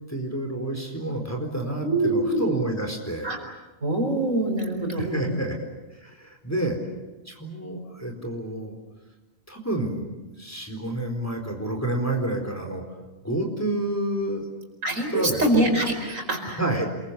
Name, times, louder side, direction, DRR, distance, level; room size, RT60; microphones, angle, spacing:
voice 1, 0.1-3.3 5.0-6.8 7.2-8.8 9.5-12.8 13.2-14.5 15.1-15.5 16.6-16.9, right 1 dB, 10° left, 2 dB, 4.2 m, -29 dB
voice 2, 1.8-2.5 3.2-3.4 3.8-5.4 6.5-6.6 14.8-16.6, right 1 dB, 70° right, 4 dB, 5.0 m, -24 dB
28.0 x 23.0 x 8.4 m, 1.1 s
omnidirectional pair, 1.4 m